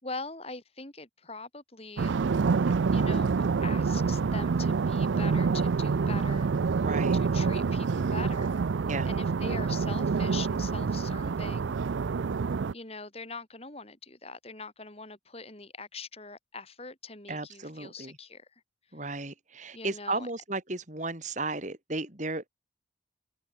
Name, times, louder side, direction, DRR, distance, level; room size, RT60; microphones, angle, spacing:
voice 1, 0.0-2.2 2.9-6.5 7.2-8.6 9.1-11.8 12.7-18.5 19.7-20.3, left 4 dB, 30° left, 4.1 m, -42 dB
sound 1, 2.0-12.7, right 5 dB, 80° right, 0.5 m, -27 dB
voice 2, 6.8-7.2 8.9-9.1 17.3-18.1 18.9-22.5, right 2 dB, 40° right, 3.6 m, -34 dB
head